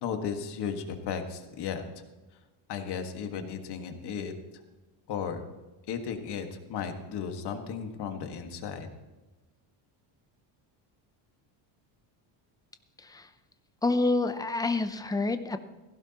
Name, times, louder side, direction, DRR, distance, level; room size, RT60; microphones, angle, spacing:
voice 1, 0.0-1.8 2.7-4.3 5.1-5.4 5.9-8.9, left 7 dB, 50° left, 6 dB, 1.7 m, -35 dB
voice 2, 13.0-13.3 13.8-15.6, left 3 dB, 10° left, 10 dB, 0.4 m, -28 dB
16.5 x 15.5 x 2.9 m, 1.1 s
cardioid pair, 150°, 50 cm